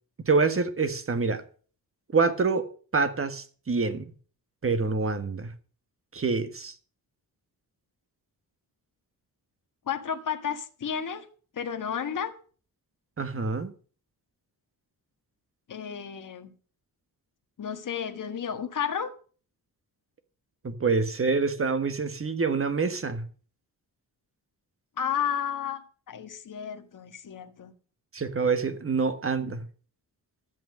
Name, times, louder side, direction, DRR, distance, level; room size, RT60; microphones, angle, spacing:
voice 1, 0.2-1.4 2.1-2.7 2.9-4.1 4.6-5.5 6.1-6.7 13.2-13.7 20.6-23.2 28.1-29.6, right 4 dB, 35° right, 1.5 m, -26 dB
voice 2, 9.9-11.2 11.5-12.3 15.7-16.5 17.6-19.1 25.0-25.8 26.1-27.7, left 8 dB, 55° left, 1.6 m, -32 dB
12.5 x 8.5 x 6.6 m
cardioid pair, 110°, 39 cm